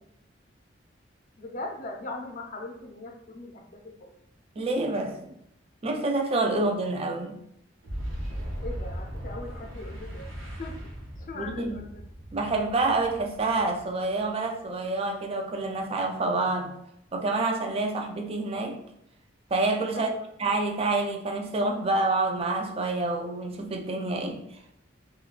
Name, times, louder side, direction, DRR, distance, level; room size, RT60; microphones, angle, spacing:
voice 1, 1.4-4.2 8.6-10.8 11.2-12.0 19.9-20.3, left 2 dB, 45° left, 0.5 m, -40 dB
voice 2, 4.6-5.2 5.8-7.4 11.4-11.8 12.3-16.8 17.1-18.8 19.5-20.1 20.4-24.4, right 2 dB, 30° right, 0.4 m, -27 dB
Boom, 7.8-14.4, equal, 90° right, 0.9 m, -38 dB
3.6 x 2.3 x 2.4 m
head